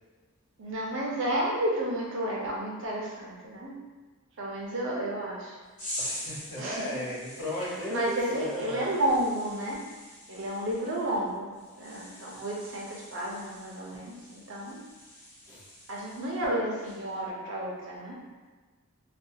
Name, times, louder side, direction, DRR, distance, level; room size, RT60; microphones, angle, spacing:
voice 1, 0.6-3.7 4.4-5.6 6.6-7.0 7.6-9.8 10.3-11.5 11.8-14.8 15.9-18.2, right 1 dB, 60° right, -4 dB, 0.6 m, -31 dB
sound 1, 5.8-16.5 16.8-17.2, left 1 dB, 35° left, 0.9 m, -44 dB
voice 2, 6.0-8.9 15.5-15.7, left 1 dB, 75° left, -12 dB, 1.0 m, -36 dB
2.4 x 2.3 x 2.7 m, 1.4 s
head